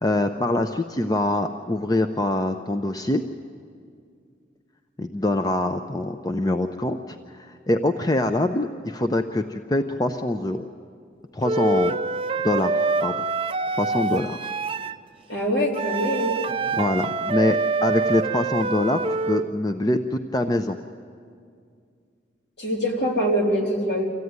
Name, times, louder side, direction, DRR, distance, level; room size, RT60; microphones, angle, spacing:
voice 1, 0.0-3.2 5.0-10.7 11.3-11.9 12.4-13.2 13.8-14.5 16.8-20.8, left 1 dB, 20° left, 7 dB, 0.5 m, -24 dB
Wind instrument woodwind instrument, 11.4-15.0 15.7-19.5, right 3 dB, 30° right, 0.6 m, -26 dB
voice 2, 15.3-16.5 22.6-24.0, equal, 65° left, 0 dB, 3.3 m, -24 dB
25.5 x 15.0 x 9.5 m, 2.2 s
head